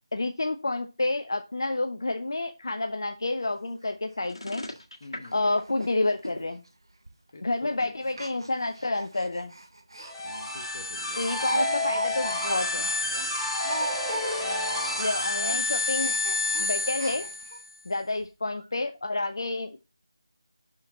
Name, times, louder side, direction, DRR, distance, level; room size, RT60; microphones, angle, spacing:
voice 1, 0.1-4.7 5.3-6.6 7.4-9.5 11.2-12.9 15.0-16.1 16.6-17.3 17.9-19.8, left 2 dB, 55° left, 6 dB, 0.7 m, -29 dB
Speech, 3.3-3.4 3.7-3.8 4.2-4.3 4.6-4.8 5.2-5.4 5.6-5.9 6.2-6.3 7.1-7.3 8.0-10.1 10.5-10.6 11.0-14.5 14.8-15.0 15.3-17.6 18.2-18.3 18.6-18.7, right 2 dB, 60° right, 1.2 m, -37 dB
sound 1, 4.2-6.4, left 1 dB, 75° left, 1.7 m, -38 dB
voice 2, 5.0-5.4 7.3-7.9 10.2-11.2 14.4-14.9, left 2 dB, 35° left, 4 dB, 1.3 m, -47 dB
sound 2, 10.0-17.7, left 2 dB, ahead, 1.4 m, -29 dB
6.5 x 6.0 x 4.0 m, 0.29 s
figure-of-eight pair, 160°, 3 cm